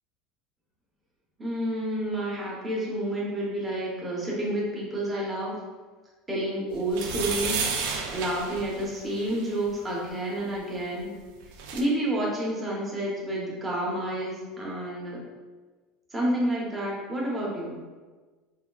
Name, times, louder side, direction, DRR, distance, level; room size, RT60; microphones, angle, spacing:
voice 1, 1.4-5.6 6.3-11.1 11.7-15.2 16.1-17.8, right 1 dB, 15° right, -4 dB, 0.6 m, -29 dB
sound 1, 6.9-9.5 11.2-11.3 11.4-11.8, right 5 dB, 75° right, 0.4 m, -31 dB
3.4 x 2.2 x 2.2 m, 1.3 s
supercardioid pair, 160°, 0 cm